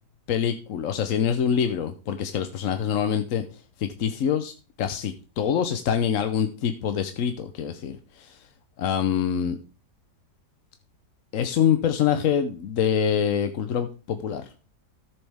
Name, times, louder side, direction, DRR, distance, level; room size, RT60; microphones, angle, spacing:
voice 1, 0.3-3.5 3.8-8.4 8.8-9.6 11.3-14.5, left 8 dB, 60° left, 8 dB, 1.0 m, -25 dB
13.5 x 7.2 x 3.5 m, 0.35 s
omnidirectional pair, 1.8 m